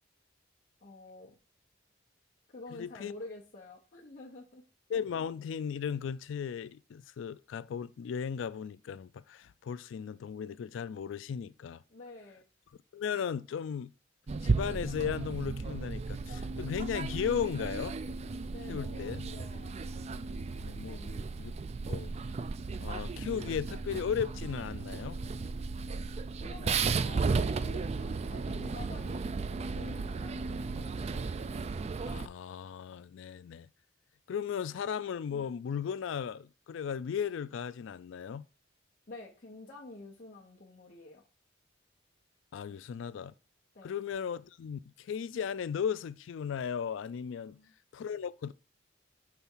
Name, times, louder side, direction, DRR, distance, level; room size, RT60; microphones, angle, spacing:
voice 1, 0.8-1.3 2.5-4.6 11.9-12.4 18.5-20.0 20.9-21.2 26.4-31.0 34.7-34.8 39.1-41.2 42.7-42.8 43.7-44.0 47.4-47.7, left 2 dB, 45° left, 1.0 m, -49 dB
voice 2, 2.7-3.1 4.9-11.8 12.9-13.9 14.4-18.0 18.7-19.3 20.6-21.5 21.9-22.1 22.8-25.2 32.1-33.7 34.3-38.4 42.5-43.3 43.8-47.6 47.9-48.5, left 7 dB, 65° left, 0.3 m, -36 dB
sound 1, 14.3-32.3, right 4 dB, 35° right, 0.3 m, -35 dB
5.8 x 3.4 x 5.5 m
head